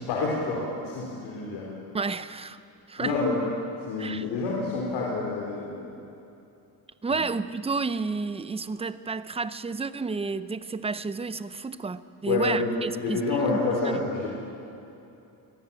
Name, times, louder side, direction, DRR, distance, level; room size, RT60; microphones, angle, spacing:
voice 1, 0.0-1.7 3.0-3.4 3.8-5.9 7.1-7.2 12.3-14.3, left 3 dB, 85° left, -3 dB, 4.6 m, -28 dB
voice 2, 1.9-2.6 2.9-3.1 4.0-4.2 7.0-13.2 13.5-13.9, right 4 dB, 15° right, 14 dB, 0.7 m, -31 dB
25.0 x 18.0 x 9.0 m, 2.8 s
cardioid pair, 140°, 39 cm